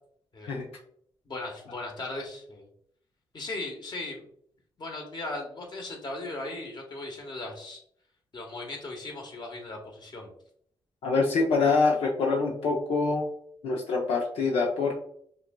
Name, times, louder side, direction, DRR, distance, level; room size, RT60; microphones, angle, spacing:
voice 1, 1.2-2.7 3.3-4.3 4.8-7.8 8.3-10.3, left 2 dB, 50° left, 1 dB, 1.3 m, -37 dB
voice 2, 11.0-13.3 13.6-14.9, left 4 dB, 85° left, -1 dB, 0.6 m, -25 dB
5.6 x 2.7 x 2.2 m, 0.66 s
cardioid pair, 55°, 10 cm